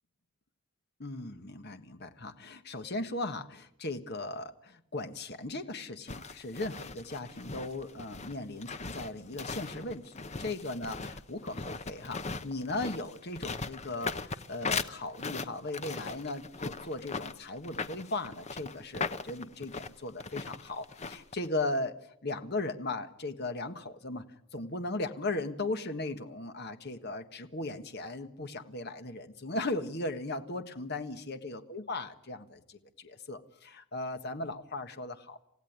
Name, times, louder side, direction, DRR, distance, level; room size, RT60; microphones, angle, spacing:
voice 1, 1.0-22.0 22.2-24.2 24.5-35.4, left 2 dB, 50° left, 8 dB, 1.5 m, -37 dB
sound 1, 6.1-21.5, left 4 dB, 30° left, 0.9 m, -39 dB
28.5 x 15.5 x 9.5 m, 0.78 s
head